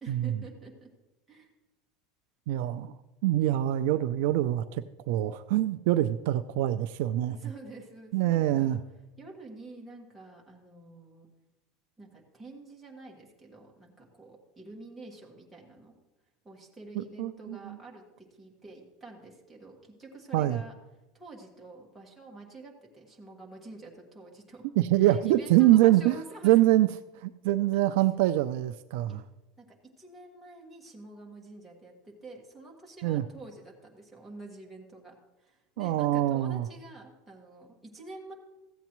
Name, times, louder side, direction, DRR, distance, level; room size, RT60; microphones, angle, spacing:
voice 1, 0.0-0.9 1.3-1.5 7.2-8.8 9.2-11.3 12.0-15.9 16.4-20.7 21.1-24.7 24.9-26.5 27.7-27.8 29.1-29.2 29.6-29.7 30.0-38.3, right 2 dB, 5° right, -3 dB, 1.6 m, -48 dB
voice 2, 2.5-2.9 3.2-7.4 8.1-8.8 17.0-17.8 20.3-20.6 24.8-26.2 26.4-26.9 27.1-29.2 33.0-33.2 35.8-36.7, right 14 dB, 60° right, 11 dB, 0.3 m, -25 dB
15.0 x 8.1 x 3.0 m, 1.0 s
supercardioid pair, 170°, 0 cm